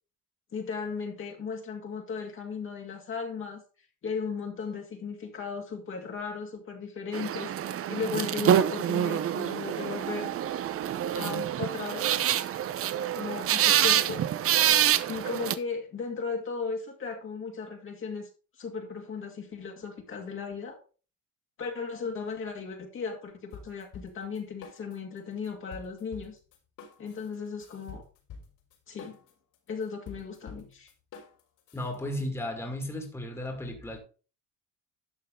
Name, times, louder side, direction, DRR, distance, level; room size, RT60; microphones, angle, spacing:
voice 1, 0.5-3.6 4.0-7.5 7.9-10.3 11.1-12.2 13.1-14.2 15.1-18.3 18.6-20.8 21.6-26.4 27.0-28.0 28.9-29.2 29.7-30.9 32.2-32.3, left 5 dB, 40° left, 2.2 m, -36 dB
sound 1, 7.1-15.5, right 10 dB, 45° right, 0.8 m, -26 dB
sound 2, 23.5-25.2 25.4-32.2, left 5 dB, 65° left, 4.5 m, -48 dB
voice 2, 31.7-34.0, left 1 dB, 10° left, 2.2 m, -34 dB
11.5 x 6.6 x 3.8 m
cardioid pair, 135°, 32 cm